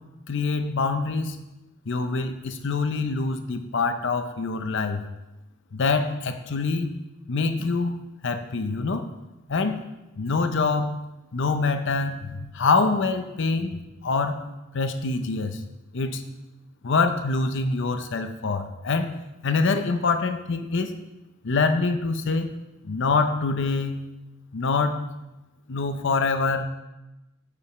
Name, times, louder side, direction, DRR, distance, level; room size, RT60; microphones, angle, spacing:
voice 1, 0.3-1.4 1.9-5.0 5.7-6.9 7.3-9.1 9.5-9.8 10.2-11.0 11.3-14.5 14.7-15.6 15.9-16.2 16.8-19.1 19.4-20.9 21.4-22.5 22.8-24.1 24.5-25.1 25.7-26.6, left 4 dB, 60° left, 8 dB, 0.6 m, -25 dB
8.0 x 5.2 x 5.9 m, 1.0 s
head